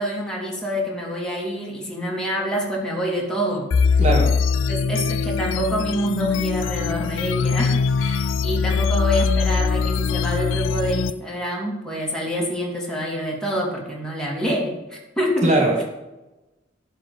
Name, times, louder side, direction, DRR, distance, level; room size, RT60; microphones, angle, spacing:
voice 1, 0.0-4.0 4.7-15.5, equal, 5° left, -3 dB, 2.9 m, -26 dB
sound 1, 3.7-11.1, left 5 dB, 80° left, 0.4 m, -22 dB
voice 2, 4.0-4.4 15.4-15.8, right 2 dB, 40° right, 1 dB, 1.7 m, -20 dB
11.0 x 5.1 x 8.0 m, 1.0 s
head